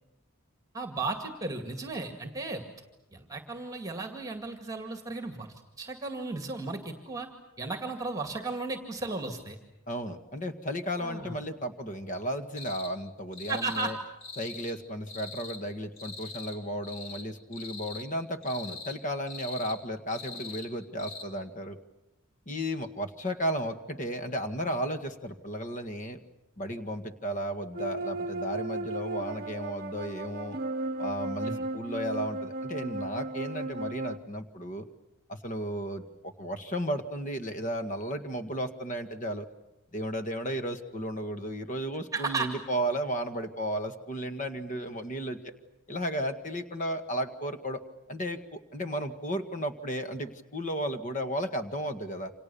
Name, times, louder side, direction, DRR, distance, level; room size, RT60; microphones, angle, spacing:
voice 1, 0.7-2.6 3.1-7.3 7.6-9.6 11.0-11.3 13.5-13.9 31.5-31.6 42.1-42.5, right 3 dB, 15° right, 5 dB, 2.1 m, -35 dB
voice 2, 9.9-14.0 14.4-21.8 22.5-26.2 26.6-30.6 31.0-34.9 35.3-39.5 39.9-45.5 45.9-47.8 48.1-52.3, equal, 35° left, 7 dB, 1.8 m, -34 dB
sound 1, 12.6-12.9 13.3-13.9 14.2-14.7 15.1-15.6 16.0-16.6 16.8-17.2 17.5-18.1 18.4-19.0 19.3-19.8 20.1-20.7 21.0-21.2, left 4 dB, 60° left, 4.2 m, -42 dB
sound 2, 27.7-34.2, right 2 dB, 45° right, 0.9 m, -35 dB
29.0 x 27.0 x 7.0 m, 0.94 s
head